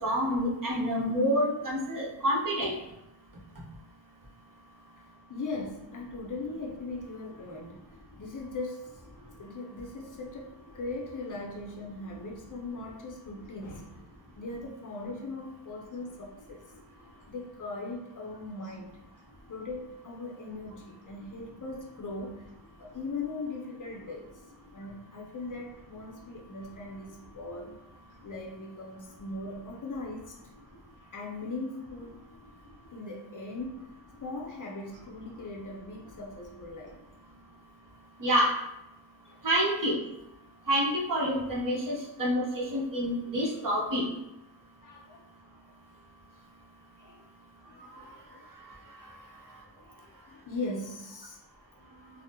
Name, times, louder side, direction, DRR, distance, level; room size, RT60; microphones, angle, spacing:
voice 1, 0.0-2.7 38.2-38.5 39.4-40.0 40.7-44.0, equal, 45° right, -4 dB, 1.0 m, -27 dB
voice 2, 5.3-7.9 8.2-8.9 9.4-14.0 14.4-16.6 17.3-19.0 19.5-22.4 22.8-24.3 24.7-27.8 28.2-30.4 31.1-32.2 32.9-33.9 34.2-37.0 39.2-39.4 44.8-45.2 47.0-47.2 47.7-48.1 49.0-49.3 49.8-51.4, left 2 dB, 45° left, 0 dB, 0.6 m, -39 dB
3.6 x 2.0 x 2.8 m, 0.90 s
cardioid pair, 85°, 44 cm